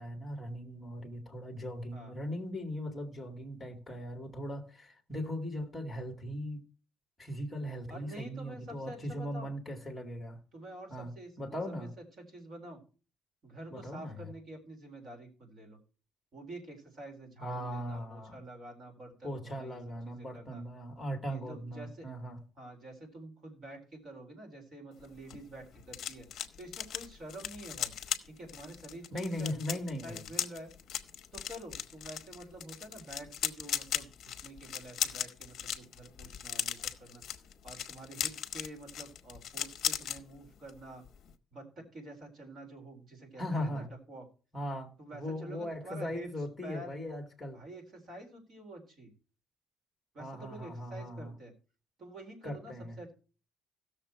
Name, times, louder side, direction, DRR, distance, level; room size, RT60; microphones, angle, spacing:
voice 1, 0.0-6.6 7.2-10.4 10.9-11.9 13.7-14.3 17.4-18.4 19.2-22.4 29.1-30.3 43.4-43.9 44.5-47.6 50.2-51.4 52.4-53.0, equal, 5° left, 2.2 m, -39 dB
voice 2, 7.9-9.5 10.5-11.9 12.2-12.8 13.4-15.8 16.3-19.8 20.1-20.6 21.3-22.1 22.6-26.3 26.6-28.0 28.3-30.7 31.3-34.1 34.4-37.2 37.6-41.0 41.5-44.3 45.0-46.3 46.6-46.9 47.5-49.1 50.1-51.5 52.0-53.1, right 1 dB, 30° right, 3.9 m, -48 dB
sound 1, 25.0-40.2 40.5-40.8 41.1-41.3, left 9 dB, 45° left, 1.0 m, -38 dB
16.5 x 6.8 x 4.4 m
cardioid pair, 180°, 0 cm